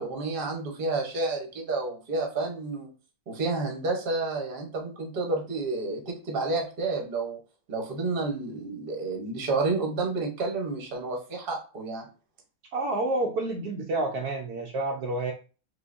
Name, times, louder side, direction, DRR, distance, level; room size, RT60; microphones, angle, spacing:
voice 1, 0.0-2.9 3.3-7.4 7.7-12.0, right 3 dB, 50° right, 1 dB, 0.6 m, -30 dB
voice 2, 12.7-15.3, right 2 dB, 90° right, 1 dB, 0.8 m, -29 dB
3.7 x 3.1 x 2.5 m, 0.35 s
omnidirectional pair, 2.2 m